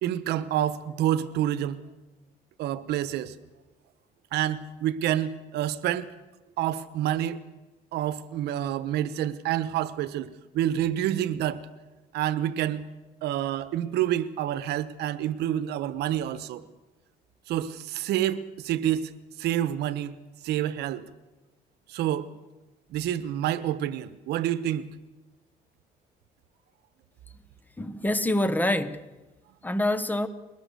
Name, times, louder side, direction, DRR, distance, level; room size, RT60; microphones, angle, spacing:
voice 1, 0.0-1.8 2.6-3.3 4.3-6.1 6.6-7.4 7.9-11.7 12.1-12.9 13.2-16.6 17.5-19.1 19.4-20.2 20.4-21.0 21.9-22.3 22.9-24.9, right 11 dB, 80° right, 15 dB, 1.1 m, -28 dB
voice 2, 27.8-29.0 29.6-30.3, left 1 dB, 10° left, 13 dB, 1.3 m, -26 dB
22.0 x 19.5 x 6.9 m, 1.1 s
cardioid pair, 110°, 17 cm